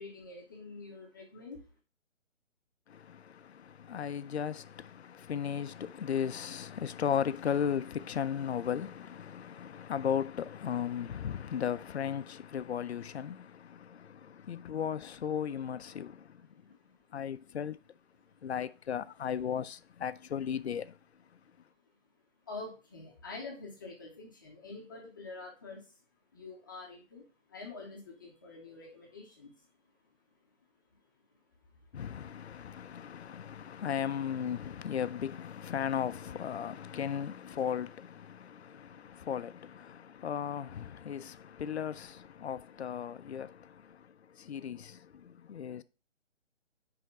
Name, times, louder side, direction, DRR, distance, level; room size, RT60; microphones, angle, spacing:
voice 1, 0.0-1.7 16.5-17.2 21.8-21.9 22.4-26.0 26.3-29.7 30.9-31.0 31.7-32.1, left 3 dB, 15° left, 0.8 m, -47 dB
voice 2, 2.9-16.5 17.1-17.8 18.4-21.0 21.3-21.4 31.9-45.8, left 8 dB, 60° left, 0.5 m, -36 dB
9.7 x 3.5 x 4.5 m
hypercardioid pair, 160°, 38 cm